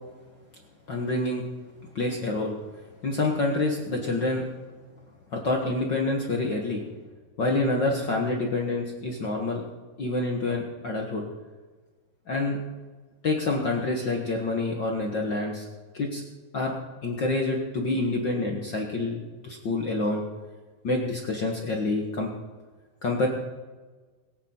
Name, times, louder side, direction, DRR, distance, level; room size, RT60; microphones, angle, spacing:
voice 1, 0.9-1.4 1.9-2.5 3.0-4.4 5.3-6.8 7.4-9.6 10.0-11.2 12.3-12.6 13.2-15.7 15.9-16.2 16.5-16.7 17.0-20.2 20.8-22.3 23.0-23.3, left 2 dB, 55° left, 0 dB, 1.3 m, -27 dB
22.5 x 9.0 x 4.4 m, 1.3 s
omnidirectional pair, 4.0 m